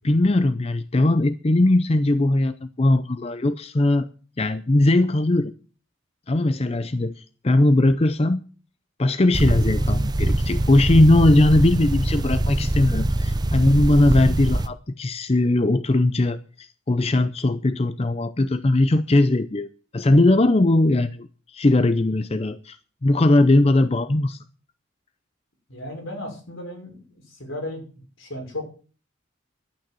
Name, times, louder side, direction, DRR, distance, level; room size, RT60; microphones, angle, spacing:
voice 1, 0.0-4.1 4.4-5.5 6.3-8.4 9.0-19.7 19.9-24.4, left 2 dB, 30° left, 12 dB, 0.5 m, -19 dB
sound 1, 9.3-14.7, right 1 dB, 20° right, 0.6 m, -23 dB
voice 2, 25.7-27.8 28.2-28.7, left 1 dB, 75° left, 2 dB, 5.8 m, -35 dB
11.5 x 9.1 x 7.6 m, 0.38 s
head